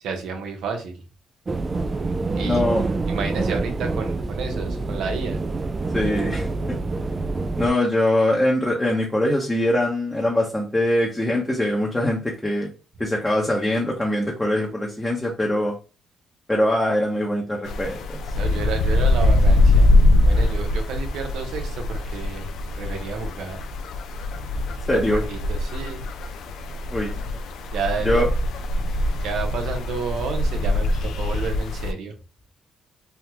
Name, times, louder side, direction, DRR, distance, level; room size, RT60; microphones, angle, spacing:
voice 1, 0.0-1.0 2.0-5.4 18.4-19.9 20.2-22.5 22.8-23.7 24.9-26.1 27.7-28.3 29.2-32.1, right 5 dB, 80° right, 3 dB, 0.9 m, -31 dB
sound 1, 1.5-7.7, right 3 dB, 35° right, 0.4 m, -26 dB
voice 2, 2.4-2.8 5.9-6.5 7.6-12.7 13.0-15.7 16.5-18.2 24.9-25.2 26.9-27.4 28.0-28.3, left 1 dB, 10° left, -3 dB, 0.8 m, -22 dB
sound 2, 17.7-31.9, left 2 dB, 80° left, 0.4 m, -22 dB
3.5 x 2.3 x 2.9 m, 0.33 s
cardioid pair, 90°, 0 cm